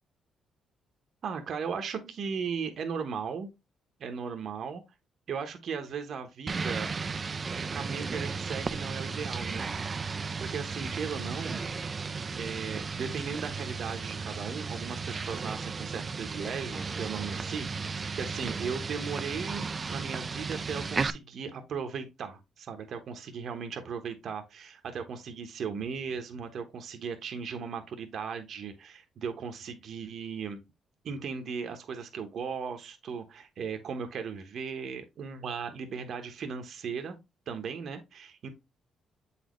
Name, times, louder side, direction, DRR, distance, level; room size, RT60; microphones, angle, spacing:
voice 1, 1.2-3.5 4.0-4.8 5.3-6.9 7.6-11.6 12.3-30.6 31.0-37.2 37.5-38.5, right 6 dB, 60° right, 1.0 m, -37 dB
sound 1, 6.5-21.1, right 4 dB, 35° right, 0.4 m, -34 dB
7.5 x 4.2 x 3.0 m
cardioid pair, 90°, 0 cm